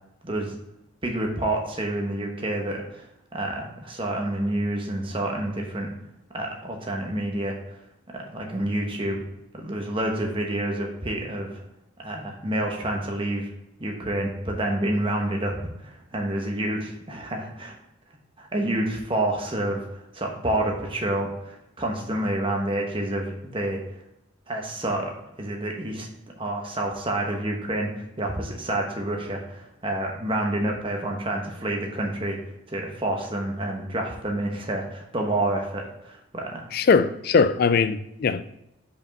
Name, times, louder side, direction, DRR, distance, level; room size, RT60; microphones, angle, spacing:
voice 1, 0.2-0.5 1.0-3.1 3.3-5.9 6.3-7.5 8.1-9.2 9.5-11.5 12.0-13.5 13.8-15.6 15.8-17.7 18.4-23.8 24.5-26.1 26.4-32.4 32.7-36.7, right 1 dB, 25° right, 1.0 m, -28 dB
voice 2, 36.7-38.4, left 5 dB, 45° left, 0.3 m, -20 dB
5.2 x 5.1 x 5.3 m
head